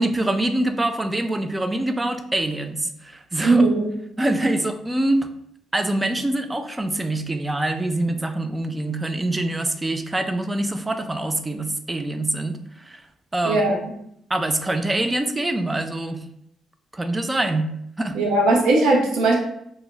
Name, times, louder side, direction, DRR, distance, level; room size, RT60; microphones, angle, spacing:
voice 1, 0.0-3.6 4.2-5.3 5.7-13.0 13.3-13.6 14.3-16.2 16.9-17.7 18.0-18.2, right 1 dB, 15° right, 8 dB, 0.3 m, -24 dB
voice 2, 3.4-3.9 13.5-13.8 18.1-19.3, right 2 dB, 90° right, -1 dB, 0.6 m, -18 dB
2.4 x 2.1 x 3.7 m, 0.74 s
cardioid pair, 90°, 0 cm